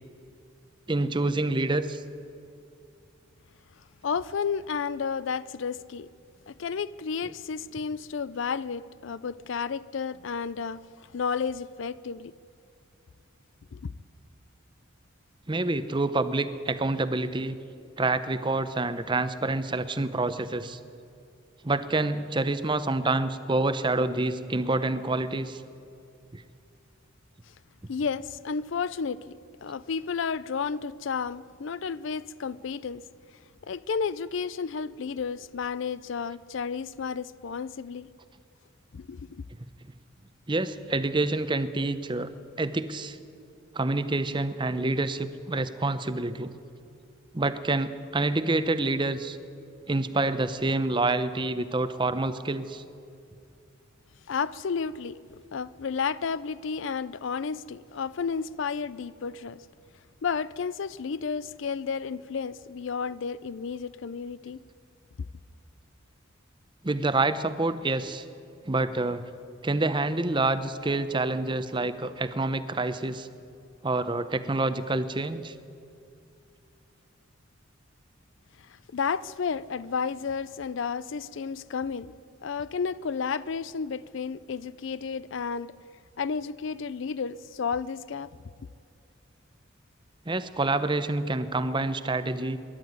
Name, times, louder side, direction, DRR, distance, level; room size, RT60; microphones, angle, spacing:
voice 1, 0.9-2.0 15.5-17.6 18.0-20.8 21.6-25.6 26.3-26.4 40.5-42.3 42.6-43.2 43.7-46.5 47.3-49.4 49.9-52.8 66.8-68.2 68.7-69.2 69.6-73.3 73.8-75.5 90.3-92.6, right 2 dB, 25° right, 0.7 m, -27 dB
voice 2, 4.0-6.1 6.5-12.3 13.7-13.9 27.9-33.0 33.6-38.1 38.9-39.4 54.3-55.2 55.5-59.6 60.2-64.6 78.6-82.1 82.4-85.7 86.2-88.3, left 6 dB, 60° left, 0.4 m, -32 dB
24.5 x 11.5 x 9.3 m
head